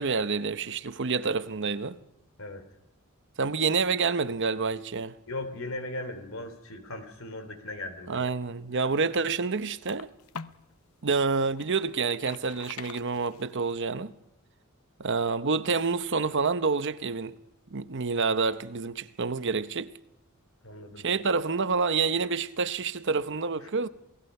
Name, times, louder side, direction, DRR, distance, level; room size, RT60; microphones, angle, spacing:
voice 1, 0.0-2.0 3.4-5.1 8.1-10.1 11.0-14.1 15.0-17.4 17.7-19.9 21.0-23.9, right 4 dB, 60° right, 0.9 m, -28 dB
voice 2, 5.3-8.2 8.7-8.8 20.6-21.0, left 2 dB, 65° left, 3.3 m, -38 dB
sound 1, 8.6-10.7 11.2-13.7, left 6 dB, 90° left, 0.8 m, -45 dB
28.0 x 18.5 x 5.5 m
head